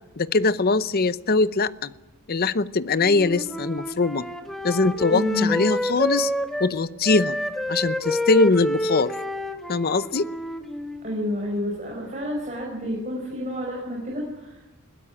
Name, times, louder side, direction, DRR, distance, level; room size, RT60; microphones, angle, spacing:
voice 1, 0.2-1.9 2.3-4.2 4.6-6.3 6.6-7.4 7.7-9.1 9.7-10.3, left 3 dB, 45° left, 16 dB, 0.7 m, -22 dB
Wind instrument woodwind instrument, 3.0-6.7 7.0-11.2, left 1 dB, ahead, 1.5 m, -29 dB
voice 2, 5.1-5.6 11.0-14.8, left 1 dB, 35° right, -1 dB, 5.2 m, -29 dB
21.0 x 16.5 x 10.0 m, 1.1 s
head